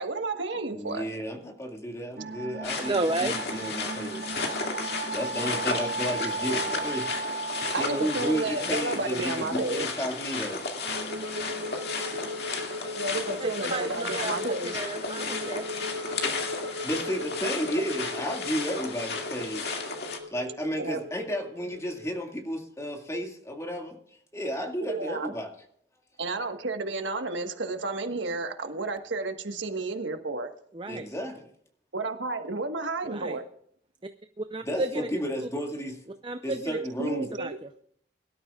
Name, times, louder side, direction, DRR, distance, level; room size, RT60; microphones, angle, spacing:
voice 1, 0.0-1.1 7.7-9.9 12.9-14.7 20.8-21.0 24.9-25.3 26.2-30.5 31.9-33.5 37.0-37.6, right 3 dB, 85° right, 6 dB, 1.5 m, -31 dB
voice 2, 0.7-4.2 5.1-7.1 7.5-10.6 16.8-19.8 20.3-24.0 24.3-25.5 30.9-31.5 34.6-36.0 36.4-37.4, equal, 15° left, 2 dB, 2.1 m, -33 dB
sound 1, 2.2-22.1, right 1 dB, 65° right, 0.7 m, -38 dB
sound 2, 2.6-20.2, left 4 dB, 60° left, 2.3 m, -33 dB
voice 3, 2.8-3.4 13.4-15.6 30.7-31.1 33.0-33.4 34.4-35.1 36.2-36.8 37.4-37.8, right 2 dB, 25° right, 8 dB, 0.6 m, -32 dB
23.0 x 12.5 x 2.4 m, 0.65 s
head